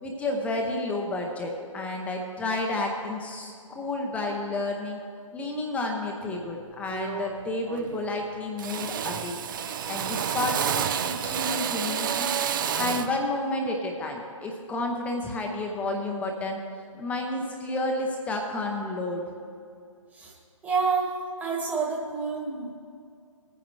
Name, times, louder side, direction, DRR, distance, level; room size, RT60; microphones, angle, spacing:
voice 1, 0.0-5.0 5.3-9.4 9.9-16.6 17.0-19.2, left 2 dB, 5° left, 1 dB, 0.6 m, -31 dB
Drill, 6.3-6.5 6.9-7.4 7.7-8.2 8.6-13.2, right 8 dB, 35° right, 0.5 m, -30 dB
voice 2, 20.6-21.1 21.4-22.7, right 5 dB, 10° right, -2 dB, 1.4 m, -28 dB
19.0 x 9.4 x 3.1 m, 2.4 s
hypercardioid pair, 145°, 18 cm